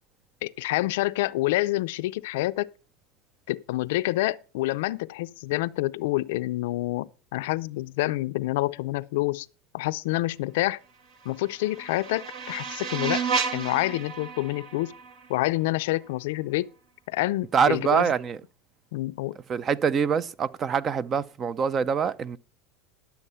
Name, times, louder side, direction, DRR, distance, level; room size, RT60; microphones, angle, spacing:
voice 1, 0.4-2.7 3.5-9.5 9.7-10.8 11.2-13.2 13.5-14.9 15.3-16.7 17.1-18.1 18.9-19.4, left 18 dB, 75° left, 0.4 m, -27 dB
sound 1, 11.0-16.1, right 5 dB, 55° right, 1.9 m, -33 dB
voice 2, 17.5-18.4 19.5-22.4, right 6 dB, 35° right, 0.6 m, -24 dB
11.5 x 7.1 x 5.6 m
hypercardioid pair, 100°, 0 cm